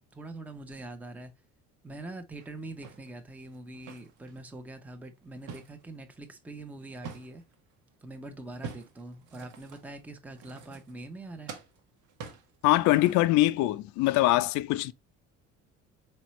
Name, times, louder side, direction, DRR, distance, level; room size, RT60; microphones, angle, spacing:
voice 1, 0.0-1.3 1.8-7.4 8.0-11.5, right 2 dB, 5° right, 0.6 m, -43 dB
sound 1, 2.4-4.5 4.9-7.6 8.4-11.2 11.5-13.5, right 6 dB, 85° right, 1.2 m, -46 dB
voice 2, 12.6-14.9, left 17 dB, 75° left, 0.5 m, -23 dB
4.3 x 4.1 x 3.0 m
cardioid pair, 140°, 29 cm